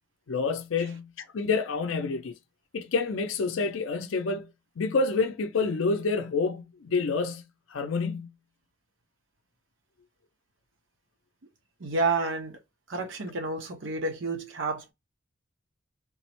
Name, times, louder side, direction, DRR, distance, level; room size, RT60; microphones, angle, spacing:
voice 1, 0.3-2.3 2.7-4.5 4.8-8.3, left 4 dB, 80° left, 0.5 m, -28 dB
voice 2, 11.8-12.6 12.9-14.9, right 3 dB, 70° right, 0.9 m, -30 dB
3.6 x 2.1 x 2.9 m
head